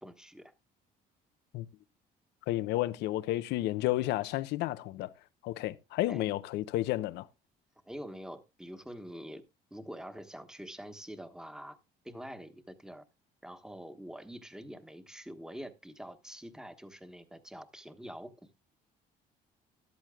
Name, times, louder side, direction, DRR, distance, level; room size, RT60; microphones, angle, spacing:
voice 1, 0.0-0.5 6.1-6.2 7.8-9.4 9.7-11.8 12.0-13.0 13.4-18.3, equal, 5° right, 1.1 m, -45 dB
voice 2, 2.5-5.1 5.4-7.3, left 16 dB, 85° left, 0.7 m, -31 dB
13.5 x 11.5 x 2.3 m
cardioid pair, 110°, 17 cm